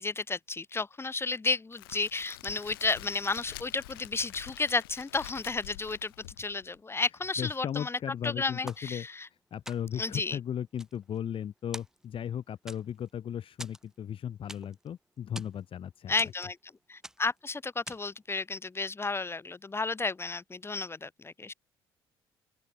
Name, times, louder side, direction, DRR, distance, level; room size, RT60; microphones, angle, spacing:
voice 1, 0.0-6.1 6.4-8.0 8.2-9.3 10.0-10.4 16.1-16.6 16.9-21.5, left 3 dB, 20° left, 1.0 m, -32 dB
Crackle, 1.7-6.8, left 18 dB, 90° left, 0.8 m, -47 dB
voice 2, 7.4-9.1 9.5-16.1, left 9 dB, 50° left, 1.2 m, -36 dB
sound 1, 8.7-9.3 9.7-10.1 10.6-11.5 11.7-12.3 12.7-13.1 13.6-14.9 15.2-15.6 16.2-16.7 17.0-17.4 17.9-18.2, right 1 dB, 5° right, 0.8 m, -45 dB
open air
hypercardioid pair, 60°, 12 cm